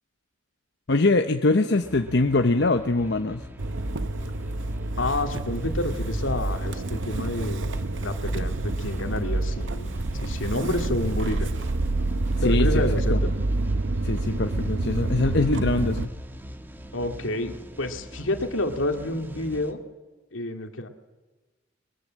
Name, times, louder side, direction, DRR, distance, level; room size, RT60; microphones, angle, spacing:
voice 1, 0.9-3.4 12.4-12.7 13.1-13.2 14.0-16.1, left 2 dB, 60° left, 6 dB, 0.9 m, -23 dB
sound 1, 1.8-19.7, equal, 10° right, 1.3 m, -43 dB
Motor vehicle (road) / Engine starting, 3.6-16.1, right 2 dB, 65° right, 0.8 m, -27 dB
voice 2, 5.0-11.5 12.4-13.3 16.9-19.8 20.3-20.9, left 1 dB, 80° left, 5 dB, 2.3 m, -29 dB
22.5 x 21.5 x 7.5 m, 1.2 s
head